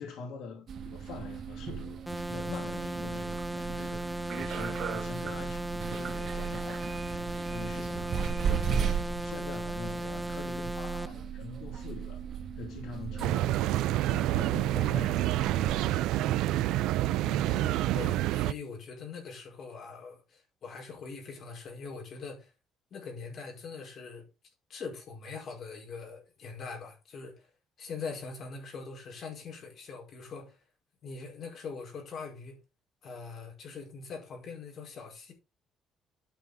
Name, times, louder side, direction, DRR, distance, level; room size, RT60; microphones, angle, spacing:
voice 1, 0.0-7.0 7.5-8.9 9.2-12.2 12.6-16.4, left 4 dB, 80° left, 2.8 m, -44 dB
sound 1, 0.7-15.7, right 7 dB, 45° right, 1.7 m, -36 dB
sound 2, 2.1-11.1, right 1 dB, ahead, 0.7 m, -36 dB
sound 3, 13.2-18.5, right 14 dB, 90° right, 0.5 m, -28 dB
voice 2, 17.2-22.5 22.9-24.2 24.7-27.5 27.8-30.6 31.0-32.6 33.0-35.3, left 4 dB, 45° left, 5.0 m, -42 dB
12.5 x 7.0 x 3.7 m
cardioid pair, 165°, 0 cm